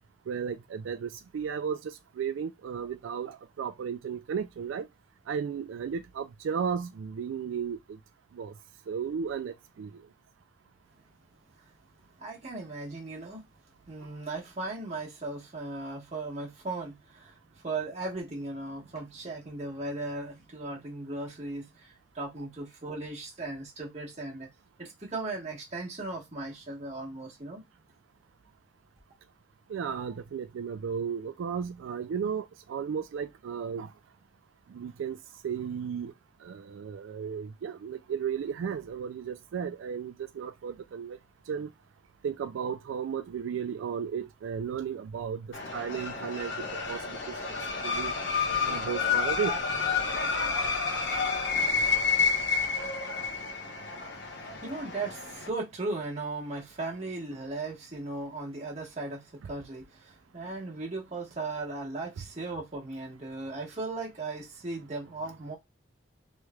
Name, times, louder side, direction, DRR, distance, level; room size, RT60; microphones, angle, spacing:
voice 1, 0.3-4.9 5.3-7.8 8.4-8.5 8.9-9.9 29.7-33.9 34.7-35.2 35.4-36.1 36.4-41.2 41.5-41.7 42.2-45.4 45.7-47.4 47.8-48.1 48.6-49.6, right 7 dB, 90° right, 0.3 m, -34 dB
voice 2, 12.2-13.5 13.9-17.3 17.6-24.5 24.8-27.6 54.2-65.6, right 2 dB, 35° right, 1.3 m, -37 dB
sound 1, 45.5-55.5, left 5 dB, 60° left, 1.0 m, -30 dB
3.2 x 3.0 x 2.3 m
head